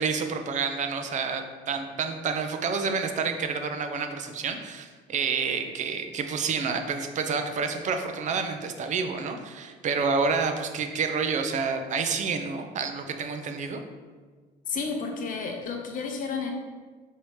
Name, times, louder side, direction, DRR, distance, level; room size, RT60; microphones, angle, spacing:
voice 1, 0.0-13.8, right 5 dB, 45° right, 6 dB, 0.5 m, -29 dB
voice 2, 14.7-16.5, left 5 dB, 55° left, 3 dB, 0.7 m, -31 dB
4.7 x 2.8 x 3.2 m, 1.4 s
cardioid pair, 110°, 17 cm